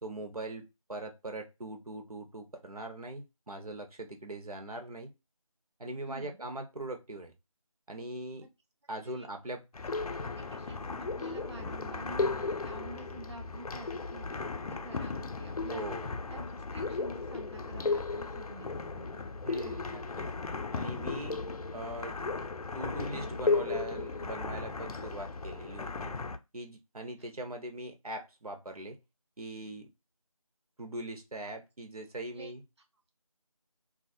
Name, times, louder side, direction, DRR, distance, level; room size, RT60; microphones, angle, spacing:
voice 1, 0.0-5.1 5.8-7.3 7.9-8.5 8.9-9.6 15.7-16.1 19.4-20.3 20.7-21.5 21.7-22.2 22.7-26.1 26.5-29.0 29.4-29.9 30.8-32.6, right 1 dB, 85° right, 0.7 m, -41 dB
voice 2, 6.0-6.4 9.0-9.3 10.4-15.8 16.3-16.4 16.7-19.3 27.2-27.3 32.3-32.5, right 2 dB, 50° right, 0.4 m, -49 dB
sound 1, 9.7-26.4, left 3 dB, 85° left, 0.4 m, -35 dB
2.4 x 2.3 x 2.6 m
figure-of-eight pair, 175°, 18 cm